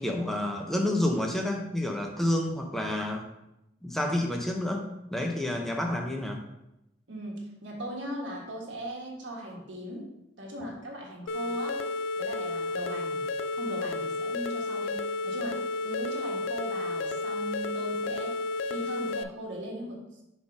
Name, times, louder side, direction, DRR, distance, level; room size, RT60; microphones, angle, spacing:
voice 1, 0.0-3.3 3.8-6.4, left 1 dB, ahead, 2 dB, 0.7 m, -29 dB
voice 2, 7.1-10.1 10.4-13.2 13.5-18.4 18.7-20.2, equal, 85° right, -2 dB, 1.5 m, -39 dB
sound 1, 11.3-19.2, left 3 dB, 90° left, 0.4 m, -32 dB
5.6 x 4.0 x 4.9 m, 0.88 s
head